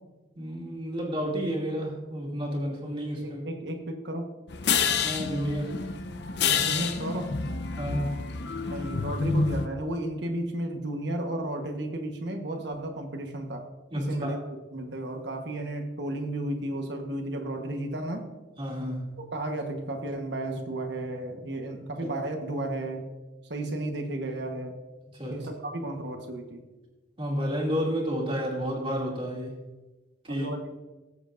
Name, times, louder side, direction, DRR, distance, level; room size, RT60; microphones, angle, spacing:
voice 1, 0.4-3.4 5.0-5.8 7.8-8.1 13.9-14.3 18.6-19.1 25.1-25.4 27.2-29.6 30.2-30.5, equal, 25° right, -2 dB, 2.4 m, -31 dB
voice 2, 3.2-4.3 6.5-7.4 8.6-13.7 14.0-14.4 14.7-18.3 19.2-23.1 23.5-24.8 25.3-26.6 30.3-30.8, right 1 dB, 65° right, 4 dB, 1.2 m, -33 dB
sound 1, 4.5-9.7, left 5 dB, 60° left, 0.7 m, -28 dB
19.0 x 7.9 x 2.5 m, 1.2 s
head